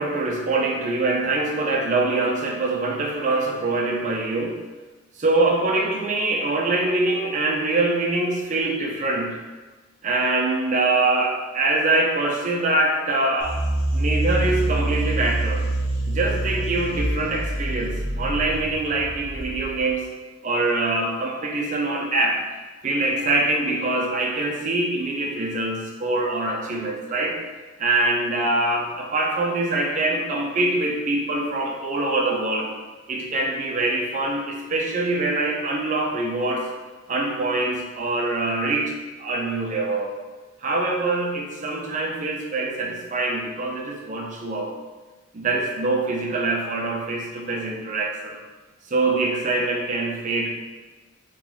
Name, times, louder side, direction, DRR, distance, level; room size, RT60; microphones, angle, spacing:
voice 1, 0.0-4.6 5.2-9.4 10.0-13.7 13.9-15.7 16.1-20.1 20.4-22.4 22.8-27.4 27.8-32.7 33.1-36.7 37.1-38.9 39.2-40.1 40.6-44.7 45.3-48.4 48.9-50.5, right 2 dB, 40° right, 0 dB, 0.5 m, -24 dB
sound 1, 13.4-19.9, right 1 dB, 60° left, 1.0 m, -26 dB
2.9 x 2.3 x 3.9 m, 1.2 s
head